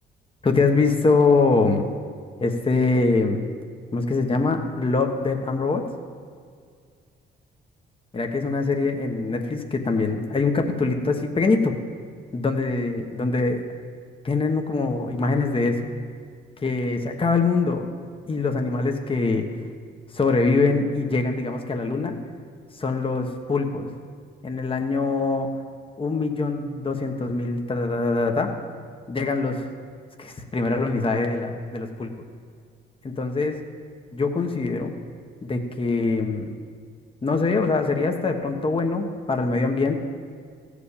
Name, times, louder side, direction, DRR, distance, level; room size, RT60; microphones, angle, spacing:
voice 1, 0.4-1.9 2.4-3.4 3.9-5.8 8.1-11.8 12.3-13.6 14.2-15.9 16.6-17.9 18.3-19.5 20.1-22.1 22.8-23.9 24.4-25.5 26.0-28.5 29.1-29.6 30.2-32.1 33.0-33.6 34.1-34.9 35.4-36.4 37.2-39.9, left 3 dB, 25° left, 4 dB, 1.2 m, -23 dB
15.5 x 5.1 x 8.5 m, 2.1 s
cardioid pair, 90°, 20 cm